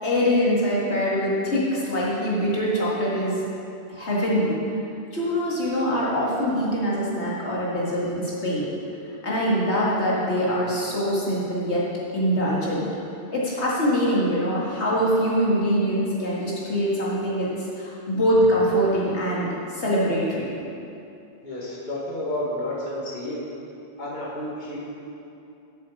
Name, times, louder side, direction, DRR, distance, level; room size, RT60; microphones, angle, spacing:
voice 1, 0.0-3.4 3.9-4.6 5.1-8.7 9.2-11.8 12.1-12.9 13.3-17.5 17.8-20.5, equal, 85° left, -7 dB, 2.5 m, -23 dB
voice 2, 21.4-23.4 24.0-24.8, left 1 dB, 45° left, -6 dB, 2.0 m, -31 dB
8.3 x 7.4 x 7.2 m, 2.6 s
omnidirectional pair, 1.1 m